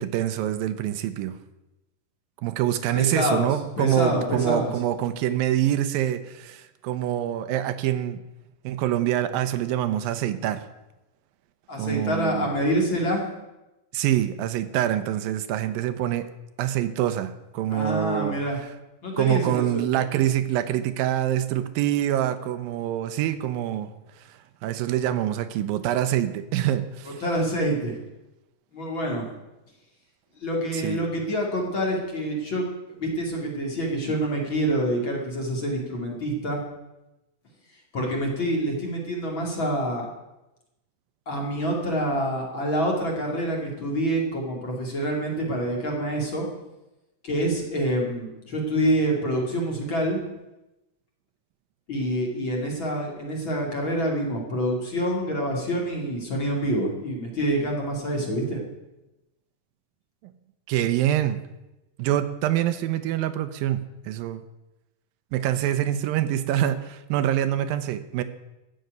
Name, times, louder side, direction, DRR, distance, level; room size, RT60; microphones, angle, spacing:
voice 1, 0.0-1.4 2.4-8.2 8.6-10.6 11.8-12.5 13.9-16.3 16.6-18.4 19.2-23.9 24.2-27.2 30.7-31.0 60.2-60.3 60.7-61.4 62.0-64.4 65.3-68.2, right 12 dB, 80° right, 11 dB, 2.5 m, -25 dB
voice 2, 2.9-3.5 3.8-4.7 11.7-13.2 17.7-18.6 19.0-19.8 27.2-28.0 28.7-29.3 30.4-32.6 33.0-36.6 37.9-40.1 41.3-46.5 47.2-50.2 51.9-58.6, equal, 35° left, -1 dB, 2.8 m, -26 dB
14.0 x 6.5 x 9.3 m, 0.97 s
omnidirectional pair, 4.1 m